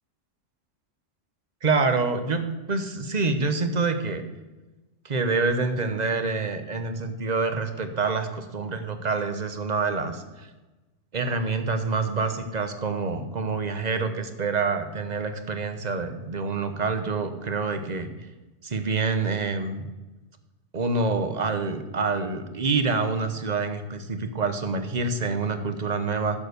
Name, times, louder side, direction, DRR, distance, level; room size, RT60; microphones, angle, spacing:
voice 1, 1.6-4.2 5.0-10.5 11.1-18.1 18.6-19.9 20.7-26.4, right 4 dB, 40° right, 8 dB, 1.0 m, -27 dB
11.0 x 6.8 x 6.8 m, 1.1 s
omnidirectional pair, 1.2 m